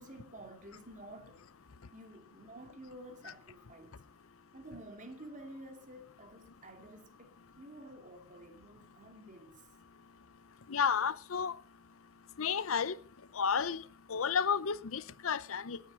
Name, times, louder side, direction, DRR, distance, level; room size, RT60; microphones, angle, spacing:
voice 1, 0.0-1.4 1.9-3.9 4.5-9.6, right 1 dB, 35° right, 2.7 m, -51 dB
voice 2, 10.7-11.6 12.4-13.0 13.3-13.8 14.1-15.8, left 6 dB, 75° left, 0.7 m, -31 dB
18.5 x 9.3 x 5.4 m
head